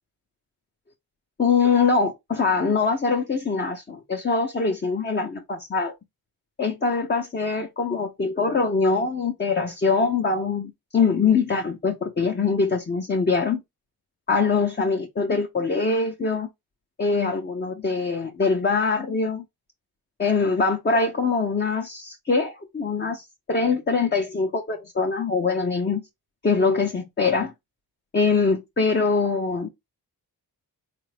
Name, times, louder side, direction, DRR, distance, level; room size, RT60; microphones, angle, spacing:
voice 1, 1.4-5.9 6.6-13.6 14.3-16.5 17.0-19.4 20.2-26.0 26.4-27.5 28.1-29.7, left 4 dB, 30° left, 0.7 m, -23 dB
3.9 x 2.5 x 3.2 m
cardioid pair, 70°, 38 cm